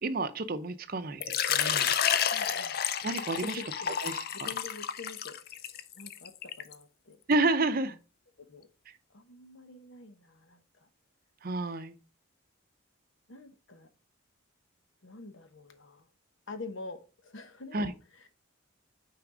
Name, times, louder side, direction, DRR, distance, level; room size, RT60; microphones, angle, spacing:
voice 1, 0.0-2.0 3.0-3.6 4.0-4.5 7.3-8.0 11.4-11.9 17.7-17.9, right 2 dB, 45° right, 0.6 m, -30 dB
Water / Liquid, 1.2-6.7, left 9 dB, 50° left, 0.5 m, -30 dB
voice 2, 2.3-2.8 3.3-4.0 4.3-6.3 6.6-7.2 7.9-8.0 8.4-8.7 9.1-10.9 13.3-13.9 15.0-16.1 16.5-18.3, left 3 dB, 70° left, 1.0 m, -46 dB
6.0 x 4.5 x 5.0 m
head